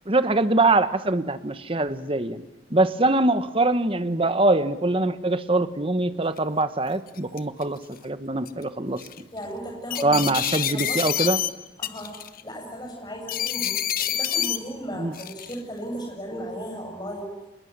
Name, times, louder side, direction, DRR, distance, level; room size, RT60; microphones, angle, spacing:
voice 1, 0.1-2.4 2.7-9.0 10.0-11.4 14.9-15.1, right 2 dB, 30° right, 12 dB, 1.2 m, -23 dB
sound 1, 6.4-6.5 7.1-7.6 8.5-8.6 9.0-9.2 9.9-11.5 11.8-12.4 13.3-14.6 15.1-15.6, left 11 dB, 50° left, 1.1 m, -27 dB
voice 2, 9.3-10.2 10.7-11.3 11.8-17.3, equal, 25° left, 2 dB, 7.6 m, -36 dB
26.0 x 21.0 x 9.5 m, 0.97 s
head